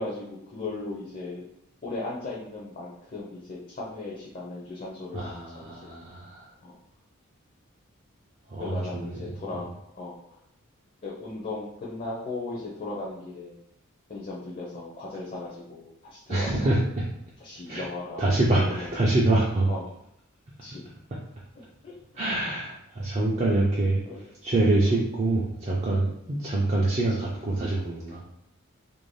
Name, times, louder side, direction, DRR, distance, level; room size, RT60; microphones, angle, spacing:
voice 1, 0.0-1.4 1.8-5.9 6.6-6.7 8.6-10.4 11.0-13.6 14.1-16.7 17.4-18.2 18.5-18.7 19.7-19.8 20.6-20.8 21.8-21.9 24.0-24.2 24.9-25.0, left 2 dB, 35° left, -5 dB, 0.4 m, -37 dB
voice 2, 5.1-6.5 8.5-9.2 9.5-9.6 16.3-17.0 17.7-17.8 18.2-19.7 22.1-28.2, right 2 dB, 30° right, -5 dB, 0.3 m, -25 dB
2.5 x 2.0 x 3.1 m, 0.76 s
head